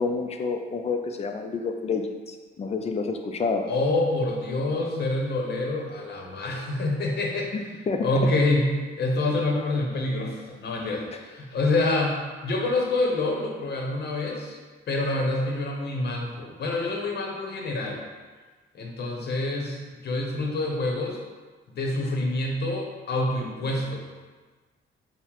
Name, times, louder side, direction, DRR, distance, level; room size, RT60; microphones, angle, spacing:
voice 1, 0.0-3.7 7.5-8.1, left 4 dB, 35° left, 5 dB, 0.4 m, -29 dB
voice 2, 3.7-7.7 8.0-8.7 9.0-14.6 14.9-18.0 18.7-21.2 21.7-24.0, left 2 dB, 55° left, -1 dB, 0.8 m, -27 dB
5.5 x 2.1 x 3.0 m, 1.4 s
cardioid pair, 90°, 20 cm